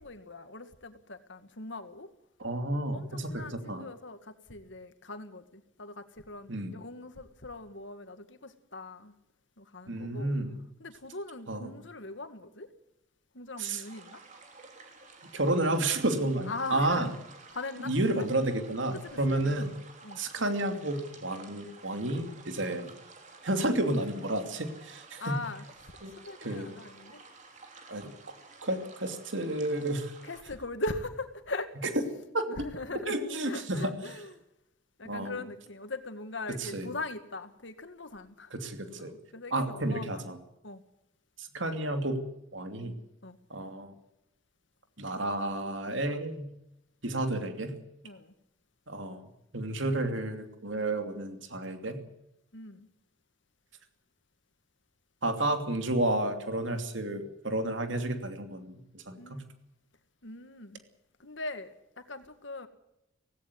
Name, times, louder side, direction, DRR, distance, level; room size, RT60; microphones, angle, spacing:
voice 1, 0.0-2.1 2.9-9.1 9.6-10.3 10.8-12.7 13.3-14.2 16.5-17.1 17.5-18.3 18.9-19.7 20.0-20.2 25.2-25.6 26.3-27.2 30.2-32.0 32.5-34.3 35.0-38.5 39.0-40.3 40.6-40.8 43.2-43.4 48.0-48.3 52.5-52.9 59.2-59.4 60.2-60.8 61.2-62.7, left 2 dB, 65° left, 9 dB, 2.0 m, -41 dB
voice 2, 2.4-3.9 6.5-6.7 9.9-10.6 11.5-11.7 13.6-13.8 15.3-17.1 17.8-19.7 20.2-22.9 23.4-25.4 26.0-26.1 26.4-26.7 27.9-28.1 28.6-30.1 32.3-32.5 33.1-33.9 35.0-35.3 36.6-36.9 38.5-39.1 39.5-40.4 41.4-42.2 42.5-42.9 43.5-43.9 45.0-46.5 47.0-47.7 48.9-49.2 49.5-52.0 55.2-59.4, right 1 dB, 70° right, 7 dB, 2.8 m, -31 dB
sound 1, 13.8-30.4, right 4 dB, 40° right, 3.5 m, -52 dB
17.5 x 17.0 x 9.4 m, 0.87 s
head